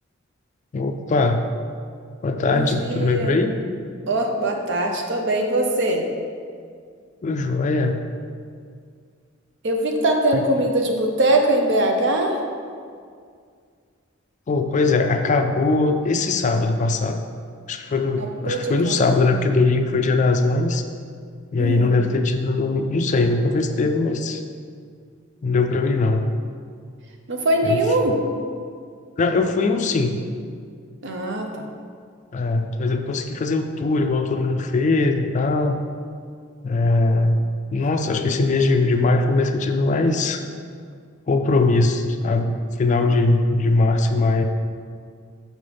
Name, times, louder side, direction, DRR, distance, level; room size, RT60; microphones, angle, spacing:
voice 1, 0.7-1.5 2.2-3.5 7.2-8.0 10.3-10.4 14.5-17.2 17.7-20.8 21.5-24.4 25.4-26.3 27.6-27.8 29.2-30.2 32.3-35.8 36.6-37.4 37.7-40.4 41.3-42.5 42.8-44.4, left 3 dB, 35° left, 6 dB, 0.3 m, -20 dB
voice 2, 2.5-3.3 4.1-6.0 9.6-12.4 18.2-19.2 21.6-21.9 27.3-28.2 31.0-31.6, right 1 dB, 60° right, 3 dB, 0.7 m, -22 dB
6.3 x 5.3 x 3.4 m, 2.2 s
head